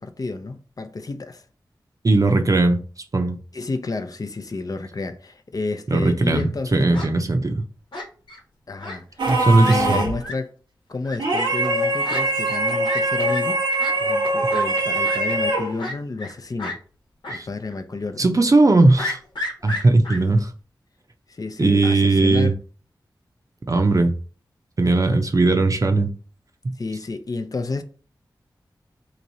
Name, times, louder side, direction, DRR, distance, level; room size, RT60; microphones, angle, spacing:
voice 1, 0.0-1.4 3.5-6.9 8.7-9.3 9.6-10.5 10.9-13.6 14.0-16.8 17.3-18.3 20.1-20.3 21.3-22.5 26.8-27.8, left 3 dB, 50° left, 0.5 m, -30 dB
voice 2, 2.0-2.8 3.1-3.4 5.9-7.6 9.3-10.0 17.3-17.5 18.2-19.2 19.6-20.5 21.6-22.5 23.7-24.1 24.8-26.1 26.6-26.7, right 2 dB, 45° right, 0.6 m, -18 dB
Fowl, 6.0-6.5 6.9-7.1 7.9-8.4 8.8-9.0 9.3-9.4 9.6-9.8 10.2-10.3 11.0-11.2 12.0-12.2 12.5-12.6 12.8-13.0 13.3-13.4 13.8-13.9 14.5-14.6 15.0-15.2 15.8-16.3 16.6-16.8 17.2-17.4 17.7-17.8 19.0-20.2, left 2 dB, 80° left, 1.1 m, -31 dB
sound 1, 9.2-10.3 11.2-15.8, right 1 dB, 85° right, 1.1 m, -22 dB
3.0 x 2.6 x 4.0 m
cardioid pair, 45°, 8 cm